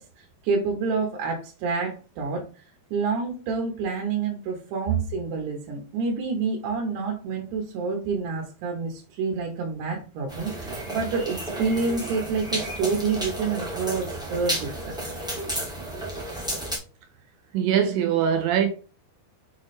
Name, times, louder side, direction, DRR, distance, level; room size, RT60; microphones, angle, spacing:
voice 1, 0.0-2.6 2.9-15.2, right 4 dB, 90° right, 3.2 m, -28 dB
sound 1, 10.3-16.8, right 1 dB, 5° right, 0.4 m, -32 dB
voice 2, 17.5-18.7, right 8 dB, 75° right, 2.4 m, -22 dB
7.3 x 4.2 x 3.2 m
omnidirectional pair, 4.6 m